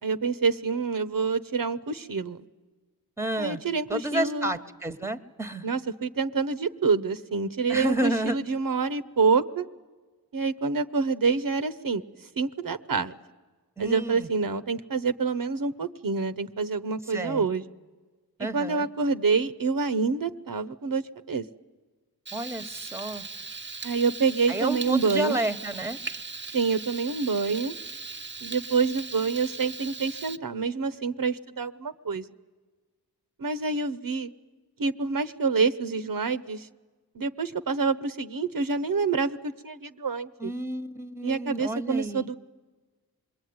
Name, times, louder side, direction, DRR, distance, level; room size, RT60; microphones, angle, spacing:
voice 1, 0.0-2.4 3.4-4.5 5.6-9.7 10.3-13.2 13.8-17.6 18.5-21.4 23.8-25.4 26.5-27.7 28.4-32.3 33.4-34.3 34.8-36.7 37.1-40.5 41.2-42.4, right 4 dB, 60° right, 12 dB, 0.9 m, -27 dB
voice 2, 3.2-3.6 3.9-5.7 7.7-8.4 13.8-14.3 17.1-17.5 18.4-18.9 22.3-23.3 24.5-26.0 40.4-42.3, right 1 dB, 5° right, 11 dB, 1.2 m, -30 dB
Frying (food), 22.3-30.4, right 4 dB, 30° right, 0.8 m, -39 dB
27.0 x 21.5 x 9.5 m, 1.3 s
wide cardioid pair, 75°, 37 cm